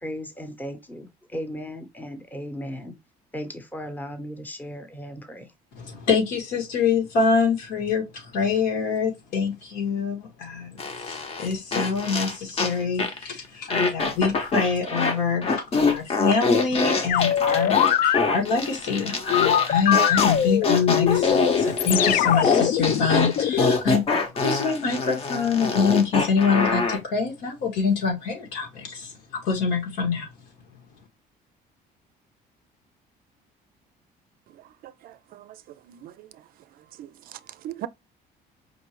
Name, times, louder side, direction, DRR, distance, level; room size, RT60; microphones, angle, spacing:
voice 1, 0.0-2.9 3.3-5.5, equal, 10° left, 0.9 m, -36 dB
voice 2, 5.7-30.5 30.7-30.8, left 5 dB, 80° left, 1.9 m, -25 dB
sound 1, 10.8-12.7 13.0-13.2 13.7-15.2 15.4-27.0, left 3 dB, 35° left, 0.9 m, -25 dB
sound 2, 17.1-18.2 19.3-23.7, left 11 dB, 55° left, 0.4 m, -22 dB
voice 3, 34.6-35.6 35.9-36.3 37.0-37.9, right 13 dB, 60° right, 0.4 m, -40 dB
5.1 x 2.5 x 3.1 m
cardioid pair, 125°, 17 cm